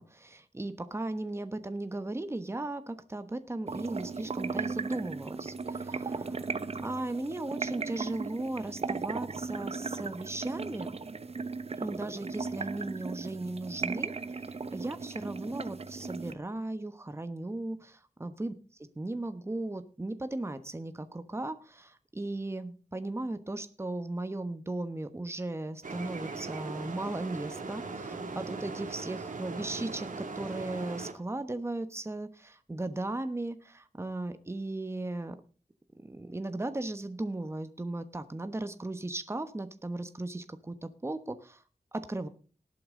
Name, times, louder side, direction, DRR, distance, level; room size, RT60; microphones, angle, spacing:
voice 1, 0.0-6.5 6.8-10.9 11.8-14.1 14.7-18.5 19.0-35.3 36.0-41.6 41.9-42.3, right 2 dB, 20° right, 10 dB, 1.2 m, -37 dB
sound 1, 3.7-16.3, right 4 dB, 50° right, 0.9 m, -37 dB
sound 2, 25.8-31.1, right 4 dB, 80° right, 2.4 m, -39 dB
19.0 x 8.7 x 3.8 m, 0.37 s
wide cardioid pair, 95°, 13 cm